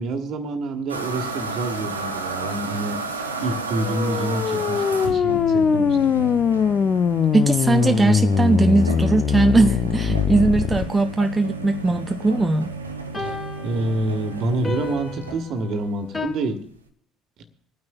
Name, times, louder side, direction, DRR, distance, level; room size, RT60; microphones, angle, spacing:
voice 1, 0.0-3.0 3.4-6.1 13.2-13.4 13.6-16.6, right 2 dB, 50° right, 7 dB, 1.4 m, -27 dB
sound 1, 0.9-15.7, right 3 dB, 85° right, 0.7 m, -32 dB
sound 2, 3.7-10.8, left 7 dB, 40° left, 0.5 m, -21 dB
voice 2, 7.3-12.7, right 3 dB, 15° right, 8 dB, 0.5 m, -19 dB
sound 3, 8.9-9.0 13.1-16.3, left 3 dB, 20° left, 2.6 m, -34 dB
26.5 x 9.4 x 2.3 m, 0.67 s
figure-of-eight pair, 60°, 0 cm